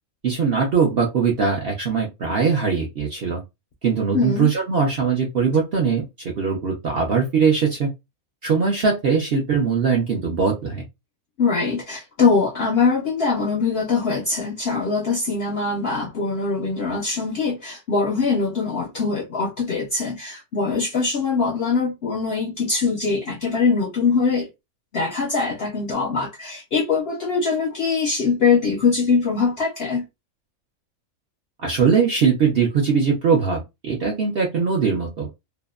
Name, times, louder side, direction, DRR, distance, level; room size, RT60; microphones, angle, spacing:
voice 1, 0.2-3.4 3.8-7.9 8.4-10.8 31.6-35.3, right 5 dB, 60° right, 0.6 m, -21 dB
voice 2, 4.1-4.5 11.4-24.5 24.9-30.1, left 4 dB, 65° left, 0.6 m, -22 dB
2.7 x 2.2 x 2.3 m
omnidirectional pair, 1.6 m